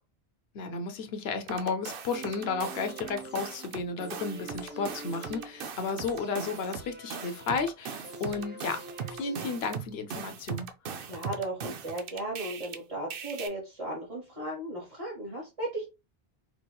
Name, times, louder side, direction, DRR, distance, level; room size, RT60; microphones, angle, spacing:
voice 1, 0.5-8.8 9.1-10.7, left 4 dB, 75° left, 0.9 m, -33 dB
sound 1, 1.5-3.8 4.1-12.8 13.1-13.5, right 7 dB, 65° right, 0.7 m, -39 dB
sound 2, 2.1-10.1 10.4-10.5, right 1 dB, 10° right, 0.7 m, -46 dB
voice 2, 11.0-15.8, right 1 dB, 35° right, 1.1 m, -36 dB
4.4 x 2.8 x 2.2 m
omnidirectional pair, 1.1 m